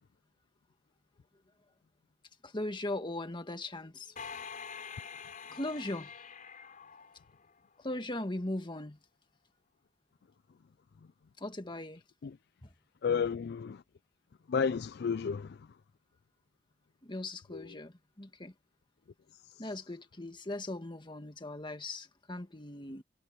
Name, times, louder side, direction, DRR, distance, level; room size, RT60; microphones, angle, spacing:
voice 1, 2.4-4.1 5.5-6.1 7.8-9.0 11.4-12.0 12.6-12.7 17.0-18.5 19.6-23.0, left 1 dB, 25° left, 1.7 m, -39 dB
sound 1, 4.2-7.8, left 6 dB, 45° left, 5.5 m, -46 dB
voice 2, 13.0-13.8 14.5-15.6 17.5-17.7, left 6 dB, 60° left, 0.4 m, -31 dB
head